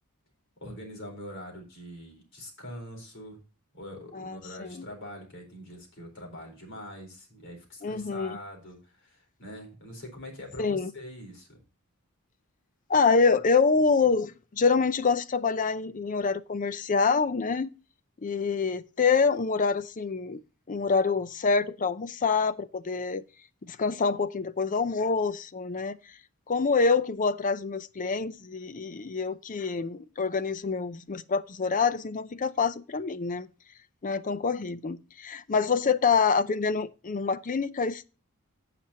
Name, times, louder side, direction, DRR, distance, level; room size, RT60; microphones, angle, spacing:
voice 1, 0.6-3.4 3.7-11.6, left 1 dB, 55° left, 4.1 m, -43 dB
voice 2, 4.1-4.9 7.8-8.4 10.6-10.9 12.9-17.7 18.2-20.4 20.7-23.2 23.7-26.0 26.5-33.5 34.0-38.0, left 5 dB, 35° left, 0.5 m, -26 dB
16.5 x 5.9 x 2.8 m
head